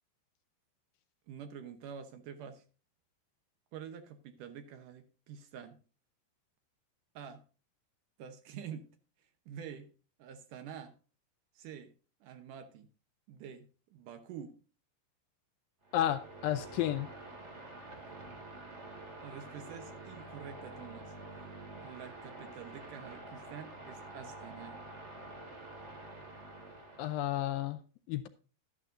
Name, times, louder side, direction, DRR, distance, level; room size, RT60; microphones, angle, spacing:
voice 1, 1.3-2.6 3.7-5.8 7.2-7.4 8.2-9.9 10.2-11.0 11.6-11.9 12.2-12.9 13.3-14.6 19.2-21.1 21.7-24.9, right 8 dB, 70° right, 8 dB, 2.0 m, -47 dB
sound 1, 15.8-27.4, right 2 dB, 25° right, 1.7 m, -48 dB
voice 2, 15.9-17.1 27.0-27.8 28.1-28.3, left 12 dB, 80° left, 9 dB, 2.1 m, -32 dB
12.0 x 11.5 x 2.6 m, 0.35 s
omnidirectional pair, 4.8 m